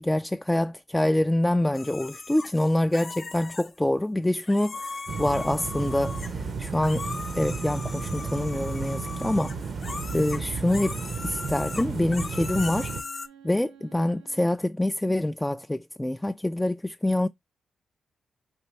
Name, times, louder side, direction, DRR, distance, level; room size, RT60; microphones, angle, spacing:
voice 1, 0.0-7.0 7.3-9.5 10.1-11.0 11.2-13.0 13.4-17.3, left 1 dB, 15° left, 0.3 m, -26 dB
sound 1, 1.7-3.7 4.4-6.5 6.8-13.3, left 4 dB, 45° left, 0.7 m, -38 dB
sound 2, 5.1-13.0, right 4 dB, 60° right, 0.7 m, -33 dB
Bowed string instrument, 9.2-14.6, right 8 dB, 85° right, 1.4 m, -54 dB
4.3 x 3.0 x 4.1 m
hypercardioid pair, 40°, 0 cm